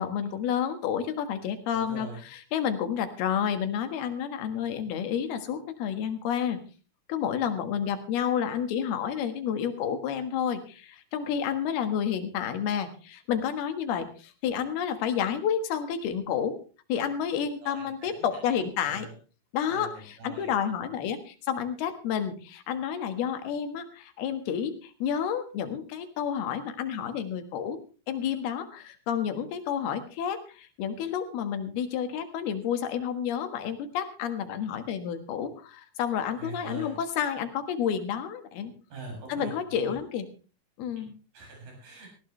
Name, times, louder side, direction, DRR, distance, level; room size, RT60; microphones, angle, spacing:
voice 1, 0.0-6.6 7.1-16.6 16.9-19.1 19.5-27.8 28.1-38.7 39.3-40.3 40.8-41.2, left 8 dB, 80° left, 8 dB, 3.5 m, -30 dB
voice 2, 1.7-2.2 17.6-18.1 18.5-19.1 19.7-20.5 36.4-37.0 38.9-40.0 41.0-41.1 41.3-42.1, right 3 dB, 65° right, 0 dB, 8.8 m, -42 dB
19.0 x 16.5 x 3.3 m, 0.34 s
omnidirectional pair, 4.4 m